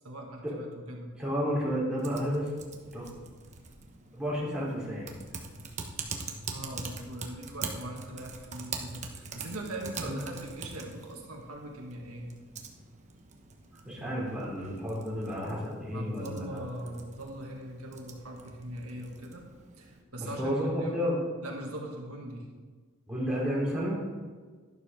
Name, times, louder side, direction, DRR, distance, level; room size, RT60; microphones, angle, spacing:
voice 1, 0.0-1.1 6.5-12.3 15.9-19.4 19.8-21.0 21.4-22.5, right 1 dB, 75° right, 0 dB, 1.8 m, -41 dB
voice 2, 1.2-2.5 2.9-3.1 4.1-5.1 10.0-10.2 13.8-16.9 20.2-21.2 23.1-24.0, equal, 5° right, -6 dB, 3.6 m, -31 dB
Typing, 2.0-20.0, right 4 dB, 35° right, 1.1 m, -44 dB
12.0 x 12.0 x 3.7 m, 1.5 s
head